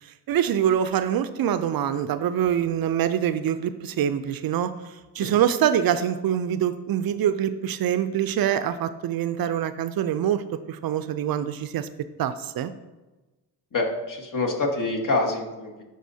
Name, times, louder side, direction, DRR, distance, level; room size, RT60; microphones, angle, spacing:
voice 1, 0.0-12.7, right 9 dB, 55° right, 12 dB, 0.5 m, -25 dB
voice 2, 13.7-15.8, left 2 dB, 45° left, 0 dB, 1.5 m, -26 dB
11.0 x 3.9 x 2.8 m, 1.1 s
supercardioid pair, 60°, 43 cm